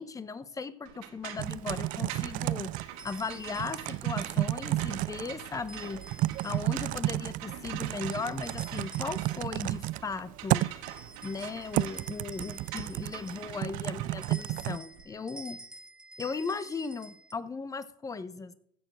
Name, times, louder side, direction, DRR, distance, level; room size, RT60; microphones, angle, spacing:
voice 1, 0.0-2.7 3.0-6.0 6.4-10.7 11.2-15.6 16.2-18.5, left 4 dB, 20° left, 14 dB, 0.9 m, -37 dB
sound 1, 0.9-15.1, right 11 dB, 75° right, 1.9 m, -45 dB
sound 2, 1.3-1.5 3.0-4.1 5.7-6.9 8.0-9.8 10.8-13.7 14.2-17.3, right 1 dB, 5° right, 1.1 m, -50 dB
Typing, 1.4-14.8, right 17 dB, 45° right, 0.4 m, -32 dB
15.5 x 6.8 x 6.2 m, 0.72 s
supercardioid pair, 105°, 19 cm